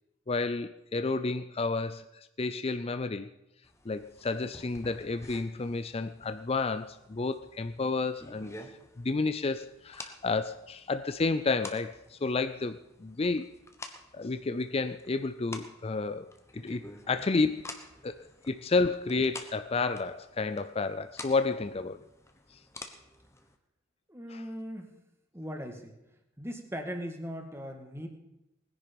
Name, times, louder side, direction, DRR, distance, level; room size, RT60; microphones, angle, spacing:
voice 1, 0.3-2.1 2.4-3.3 3.9-8.5 9.0-13.5 14.1-17.6 18.0-22.0 24.3-24.4, left 3 dB, 30° left, 11 dB, 0.5 m, -31 dB
sound 1, 3.6-23.6, left 2 dB, 15° left, 1.1 m, -50 dB
voice 2, 24.1-24.9 25.3-25.9 26.4-28.1, equal, 15° right, 5 dB, 1.8 m, -39 dB
20.0 x 10.5 x 5.3 m, 0.88 s
head